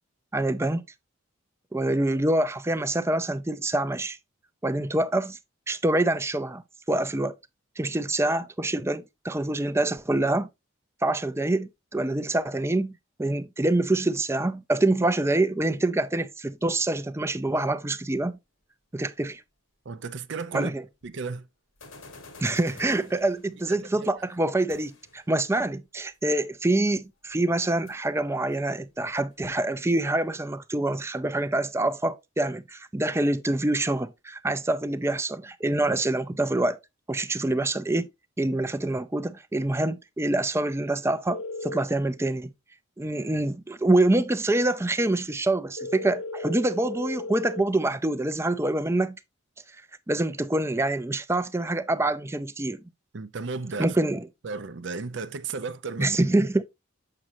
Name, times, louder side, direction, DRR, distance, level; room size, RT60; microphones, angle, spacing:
voice 1, 0.3-0.8 1.7-4.2 4.6-5.4 5.7-6.6 6.9-7.3 7.8-10.5 11.0-18.3 18.9-19.4 20.5-20.8 22.4-36.8 37.1-38.1 38.4-42.5 43.0-49.2 50.1-52.8 53.8-54.3 56.0-56.6, right 2 dB, 15° right, 0.5 m, -26 dB
voice 2, 19.9-20.7 21.0-21.5 23.7-24.1 53.1-54.0 54.4-56.2, right 4 dB, 60° right, 0.5 m, -34 dB
sound 1, 21.0-21.1 21.8-23.6 24.7-25.3 26.8-26.9 27.2-27.3 27.6-27.9 28.4-30.2, left 3 dB, 80° left, 1.7 m, -49 dB
sound 2, 41.3-41.8 45.8-47.6, left 2 dB, 65° left, 0.5 m, -35 dB
7.6 x 6.1 x 2.7 m
head